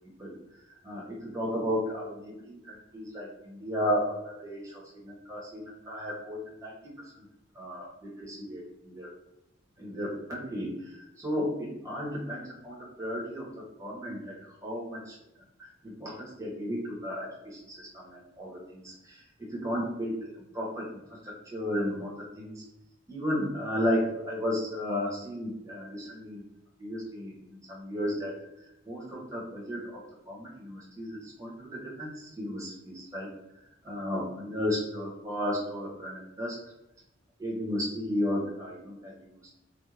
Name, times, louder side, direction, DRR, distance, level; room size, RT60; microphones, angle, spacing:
voice 1, 0.2-7.2 7.5-9.1 9.8-15.2 15.6-22.6 23.1-26.5 26.8-28.4 28.6-33.3 33.8-36.6 37.4-39.4, equal, 15° right, -5 dB, 0.8 m, -34 dB
2.3 x 2.1 x 3.1 m, 0.87 s
head